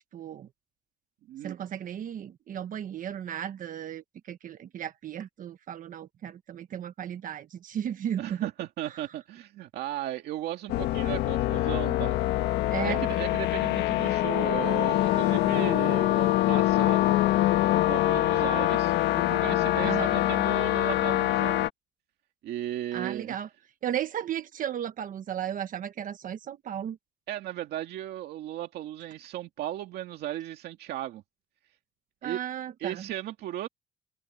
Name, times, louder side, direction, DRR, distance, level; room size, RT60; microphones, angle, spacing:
voice 1, 0.1-0.5 1.4-8.5 12.7-13.0 19.8-20.2 22.9-23.5 23.8-27.0 32.2-33.1, right 9 dB, 50° right, 1.3 m, -35 dB
voice 2, 1.3-1.6 8.2-12.2 12.7-17.1 17.7-21.6 22.4-23.4 27.3-31.2 32.2-32.4 32.8-33.7, right 13 dB, 75° right, 2.2 m, -36 dB
sound 1, 10.7-21.7, left 15 dB, 85° left, 1.7 m, -24 dB
cardioid pair, 110°, 17 cm